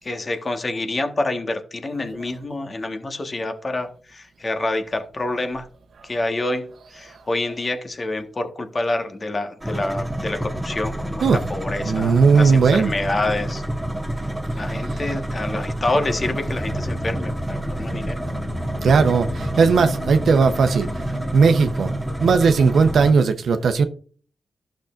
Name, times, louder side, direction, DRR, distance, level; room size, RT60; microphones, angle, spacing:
voice 1, 0.0-5.7 6.0-13.6 14.2-18.2, left 2 dB, 40° left, 1.4 m, -27 dB
sound 1, 9.6-23.1, right 1 dB, ahead, 1.5 m, -28 dB
voice 2, 11.8-12.9 18.2-18.3 18.8-20.9 21.3-21.9 22.2-23.9, right 5 dB, 75° right, 0.8 m, -17 dB
sound 2, 15.9-23.2, left 2 dB, 60° left, 0.6 m, -36 dB
12.0 x 6.4 x 2.5 m
cardioid pair, 50°, 0 cm